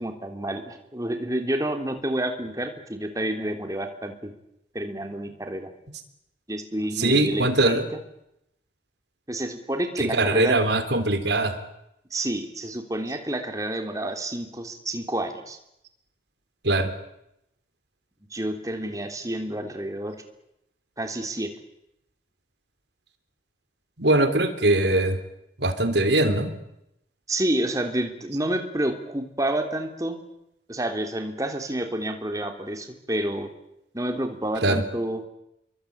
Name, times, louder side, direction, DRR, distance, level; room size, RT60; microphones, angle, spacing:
voice 1, 0.0-4.3 4.7-5.7 6.5-7.8 9.3-10.6 12.1-15.6 18.3-20.2 21.0-21.5 27.3-30.2 30.7-33.5 33.9-35.2, right 1 dB, 20° right, 5 dB, 3.3 m, -29 dB
voice 2, 7.0-7.9 10.0-11.6 16.6-16.9 24.0-25.2 25.6-26.5 34.6-34.8, right 2 dB, 70° right, 10 dB, 3.6 m, -21 dB
28.5 x 23.0 x 8.7 m, 0.81 s
head